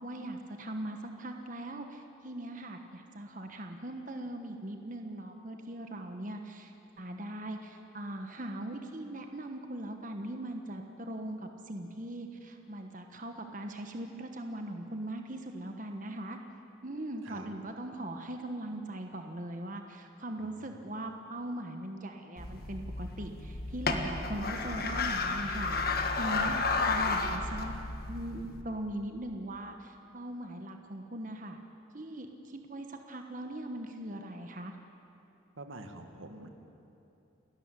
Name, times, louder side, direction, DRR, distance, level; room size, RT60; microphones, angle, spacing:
voice 1, 0.0-16.4 16.8-27.7 28.1-31.6 31.9-34.7, right 1 dB, 40° right, 4 dB, 1.3 m, -40 dB
voice 2, 20.4-20.8 35.6-36.5, right 2 dB, 85° right, 5 dB, 2.0 m, -47 dB
sound 1, 22.4-28.6, left 3 dB, 50° left, 1.6 m, -32 dB
29.5 x 13.0 x 9.9 m, 2.8 s
head